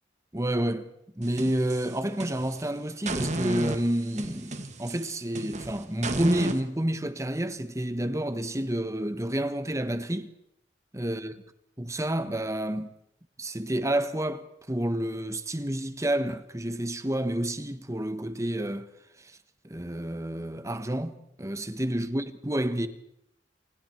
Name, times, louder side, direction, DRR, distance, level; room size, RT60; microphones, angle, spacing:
voice 1, 0.3-10.3 10.9-11.3 11.8-12.9 13.4-18.9 19.6-22.9, right 1 dB, 15° right, 1.4 m, -29 dB
sound 1, 1.2-2.6 3.1-6.6, right 2 dB, 40° right, 2.3 m, -33 dB
29.0 x 28.5 x 4.6 m
head